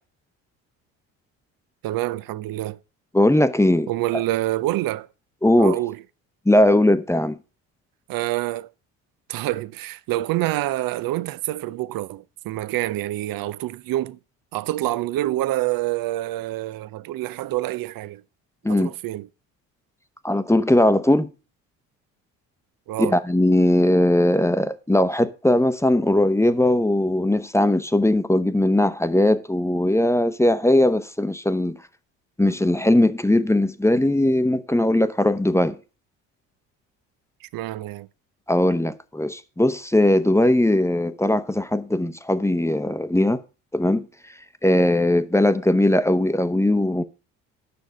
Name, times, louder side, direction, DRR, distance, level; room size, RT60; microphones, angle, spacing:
voice 1, 1.8-2.8 3.9-5.1 5.6-6.0 8.1-8.7 9.3-14.2 14.5-18.2 18.7-19.3 22.9-23.2 37.4-38.1, right 16 dB, 60° right, 0.7 m, -27 dB
voice 2, 3.1-3.9 5.4-5.7 6.5-7.4 18.6-18.9 20.2-21.3 23.0-31.8 32.4-35.8 38.5-43.4 43.7-44.1 44.6-47.0, left 1 dB, 5° left, 0.9 m, -19 dB
9.7 x 6.3 x 6.3 m
hypercardioid pair, 60°, 40 cm